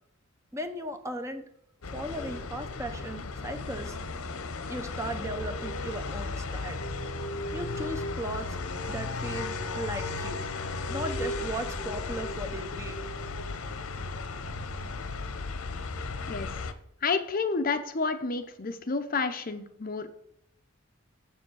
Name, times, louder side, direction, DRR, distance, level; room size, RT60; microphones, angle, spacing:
voice 1, 0.5-1.4 1.9-4.0 4.7-6.8 7.5-8.6 8.9-10.4 10.9-13.0, right 1 dB, 15° right, 7 dB, 0.8 m, -37 dB
sound 1, 1.8-16.7, left 3 dB, 80° left, 0.8 m, -35 dB
voice 2, 17.0-20.1, left 4 dB, 40° left, 9 dB, 0.7 m, -30 dB
7.5 x 7.1 x 6.3 m, 0.74 s
head